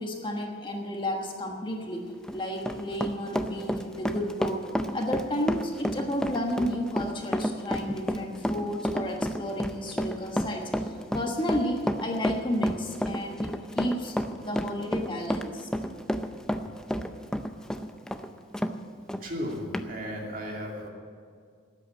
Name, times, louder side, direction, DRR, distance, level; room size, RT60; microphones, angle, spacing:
voice 1, 0.0-2.1 2.3-4.6 4.9-15.7, equal, 25° left, 1 dB, 1.3 m, -32 dB
Run, 2.1-18.8 19.1-19.2 19.7-19.9, equal, 5° left, 0.5 m, -30 dB
voice 2, 19.2-20.9, equal, 45° right, -1 dB, 2.6 m, -35 dB
13.0 x 9.0 x 8.9 m, 2.1 s
head